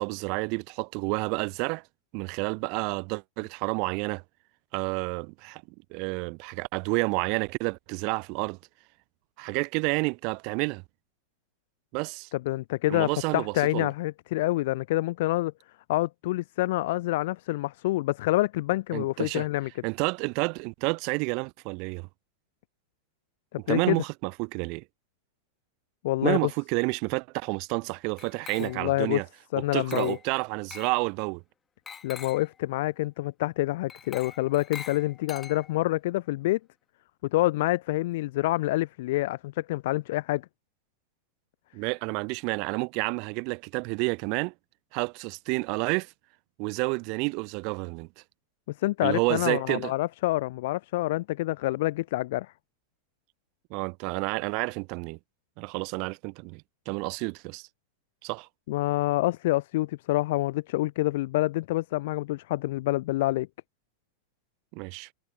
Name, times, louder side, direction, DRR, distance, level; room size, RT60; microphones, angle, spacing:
voice 1, 0.0-1.8 2.1-4.2 4.7-5.6 5.9-8.6 9.4-10.8 11.9-12.3 12.9-13.9 18.9-19.5 19.8-22.1 23.6-24.8 26.2-29.3 29.6-31.4 41.7-44.5 44.9-46.1 46.6-48.1 49.0-49.9 53.7-55.2 55.6-57.7 58.2-58.5 64.7-65.1, right 33 dB, 45° right, 0.5 m, -30 dB
voice 2, 12.3-15.5 15.9-19.7 23.7-24.0 26.0-26.5 28.6-29.2 29.5-30.2 32.0-36.6 37.3-40.4 48.8-52.5 58.7-63.5, left 18 dB, 50° left, 0.5 m, -27 dB
Glass, 28.2-29.0 29.9-30.3 30.7-31.0 31.9-32.5 33.9-35.9, left 7 dB, 20° left, 1.7 m, -44 dB
figure-of-eight pair, 90°, 0 cm